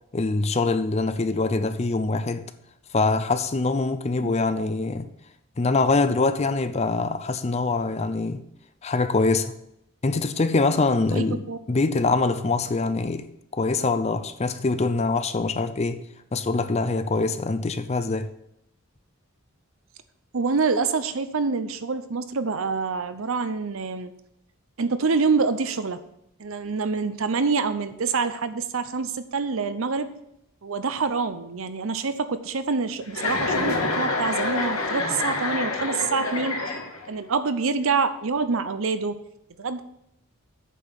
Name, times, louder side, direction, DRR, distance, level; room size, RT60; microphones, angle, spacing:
voice 1, 0.1-2.5 2.9-5.1 5.6-8.4 8.8-9.5 10.0-13.3 13.5-16.0 16.3-18.3, left 3 dB, 30° left, 0.5 m, -24 dB
voice 2, 11.1-11.6 20.3-24.1 24.8-26.0 26.4-30.1 30.6-36.6 37.1-39.2 39.6-39.8, right 4 dB, 70° right, 0.7 m, -26 dB
Chuckle chortle, 33.1-37.2, left 3 dB, 80° left, 1.8 m, -27 dB
8.4 x 5.5 x 6.1 m
head